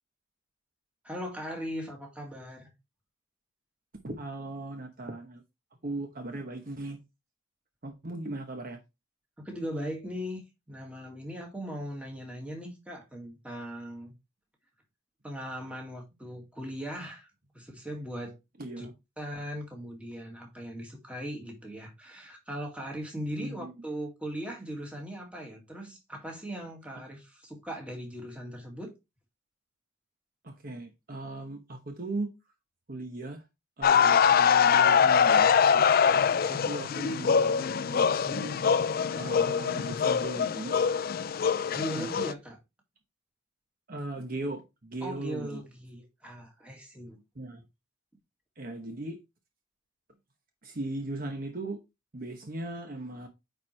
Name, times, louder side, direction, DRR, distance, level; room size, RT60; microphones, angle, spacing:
voice 1, 1.0-2.7 9.4-10.4 10.7-14.1 15.2-17.3 17.5-18.4 18.8-18.9 19.2-28.9 41.7-42.6 45.0-47.2, equal, 5° right, 2.0 m, -39 dB
voice 2, 4.0-5.4 5.8-7.0 7.8-8.8 18.6-18.9 23.4-23.7 30.4-32.3 32.9-33.4 33.8-38.6 39.2-40.8 41.9-42.1 43.9-45.6 47.4-47.6 48.6-49.2 50.6-51.8 52.1-53.3, right 2 dB, 45° right, 1.0 m, -38 dB
sound 1, 33.8-42.3, left 7 dB, 45° left, 0.4 m, -23 dB
9.2 x 4.4 x 3.3 m
head